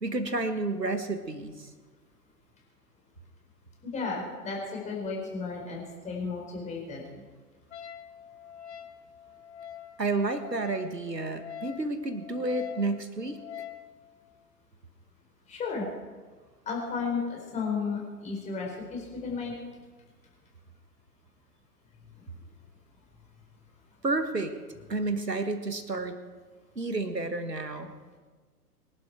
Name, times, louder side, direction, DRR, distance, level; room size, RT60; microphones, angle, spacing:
voice 1, 0.0-1.7 10.0-13.4 24.0-24.5 24.9-26.2 26.8-27.9, right 2 dB, 85° right, 9 dB, 1.7 m, -30 dB
voice 2, 3.8-7.0 15.5-15.8 16.7-19.5, left 4 dB, 15° left, -1 dB, 4.5 m, -33 dB
Wind instrument woodwind instrument, 7.7-13.9, left 9 dB, 45° left, 1.5 m, -44 dB
24.5 x 11.5 x 4.6 m, 1.4 s
figure-of-eight pair, 115°, 48 cm